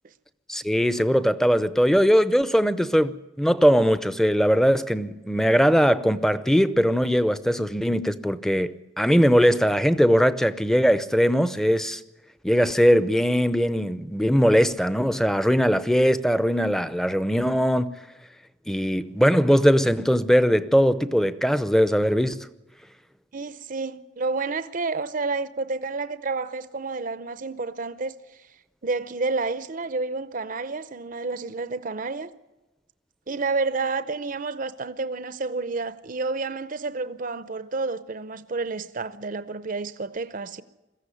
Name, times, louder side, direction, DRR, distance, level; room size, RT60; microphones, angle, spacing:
voice 1, 0.5-12.0 12.4-18.0 18.7-22.5, equal, ahead, 0.7 m, -20 dB
voice 2, 23.3-28.2 28.8-32.3 33.3-40.6, right 3 dB, 45° right, 0.7 m, -30 dB
22.0 x 15.0 x 9.9 m
head